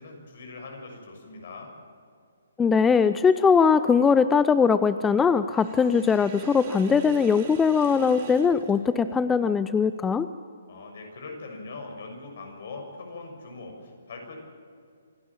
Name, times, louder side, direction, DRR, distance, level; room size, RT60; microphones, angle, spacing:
voice 1, 0.0-1.7 10.7-14.4, left 3 dB, 60° left, 2 dB, 6.9 m, -41 dB
voice 2, 2.6-10.3, left 6 dB, 10° left, 13 dB, 0.5 m, -21 dB
Sink (filling or washing), 5.5-9.5, right 5 dB, 40° right, 3.6 m, -43 dB
27.0 x 11.5 x 8.8 m, 2.3 s
hypercardioid pair, 140°, 0 cm